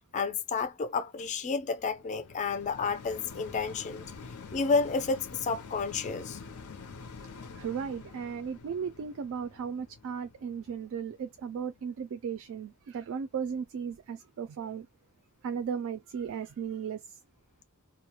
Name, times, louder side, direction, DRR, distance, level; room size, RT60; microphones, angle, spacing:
voice 1, 0.1-4.0 4.5-6.4, left 4 dB, 35° left, 0.4 m, -30 dB
sound 1, 1.2-12.5 13.1-13.2, left 4 dB, 80° left, 0.6 m, -47 dB
voice 2, 7.6-14.9 15.4-17.0, right 7 dB, 65° right, 0.3 m, -36 dB
2.3 x 2.1 x 2.9 m
head